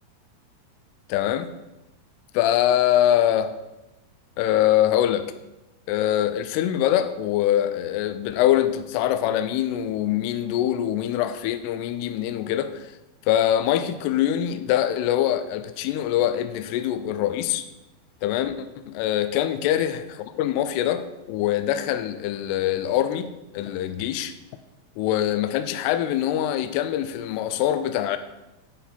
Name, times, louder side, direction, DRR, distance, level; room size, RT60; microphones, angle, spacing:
voice 1, 1.1-1.5 2.3-3.5 4.4-5.3 5.9-12.9 13.3-17.7 18.2-18.7 19.0-24.3 25.0-28.2, left 11 dB, 85° left, 10 dB, 2.3 m, -23 dB
9.2 x 5.3 x 4.3 m, 0.99 s
omnidirectional pair, 5.2 m